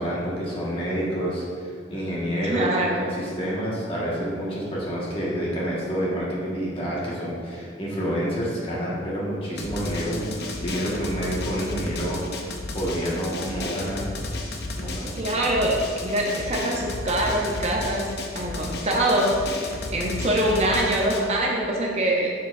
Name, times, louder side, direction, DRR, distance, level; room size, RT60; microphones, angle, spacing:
voice 1, 0.0-2.7 3.0-14.1 14.8-15.1, equal, 30° left, -6 dB, 1.5 m, -28 dB
voice 2, 2.4-3.1 15.1-19.6 19.9-22.3, right 1 dB, 35° right, -1 dB, 0.6 m, -24 dB
Drum, 9.6-21.2, left 2 dB, 55° left, 0.7 m, -33 dB
7.0 x 7.0 x 2.6 m, 2.1 s
head